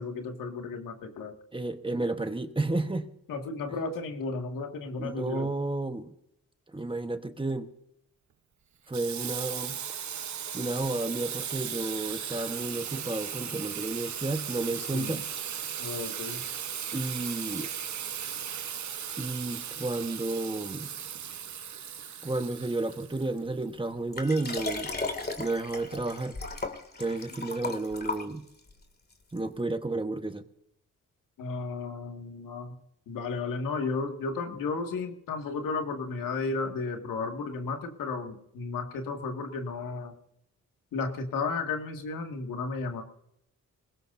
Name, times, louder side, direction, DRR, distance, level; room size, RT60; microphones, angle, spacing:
voice 1, 0.0-1.3 3.3-5.5 14.9-15.2 15.8-16.4 31.4-32.7 33.1-40.1 40.9-43.0, left 4 dB, 90° left, 3 dB, 2.2 m, -33 dB
voice 2, 1.5-3.1 5.0-6.1 6.7-7.7 8.9-9.8 10.5-15.2 16.9-17.7 19.2-20.9 22.2-24.9 25.4-26.4 27.0-28.5 29.3-30.4, right 2 dB, 15° right, 8 dB, 1.3 m, -32 dB
Water tap faucet / Sink (filling or washing), 8.9-23.7, right 8 dB, 60° right, 1.2 m, -37 dB
Liquid, 24.1-28.7 29.4-29.5, left 3 dB, 30° left, 2.4 m, -36 dB
21.0 x 18.0 x 2.7 m, 0.76 s
cardioid pair, 75°, 32 cm